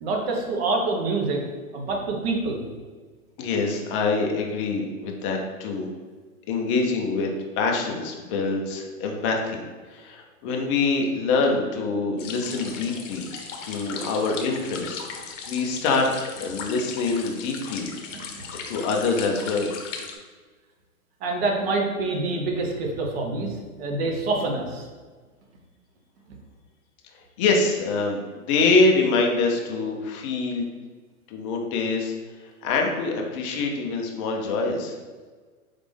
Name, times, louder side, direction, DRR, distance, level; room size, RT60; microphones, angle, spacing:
voice 1, 0.0-1.4 1.7-2.7 13.5-13.9 18.1-18.5 21.2-24.9 26.3-26.4, right 3 dB, 45° right, 1 dB, 1.0 m, -27 dB
voice 2, 3.4-5.9 6.5-7.3 7.6-9.6 9.9-13.3 13.6-17.9 18.7-19.7 27.4-30.7 31.3-32.1 32.6-35.0, left 3 dB, 25° left, 1 dB, 0.4 m, -25 dB
sound 1, 12.2-20.2, left 5 dB, 60° left, 0.9 m, -38 dB
4.0 x 3.4 x 3.3 m, 1.4 s
hypercardioid pair, 130°, 43 cm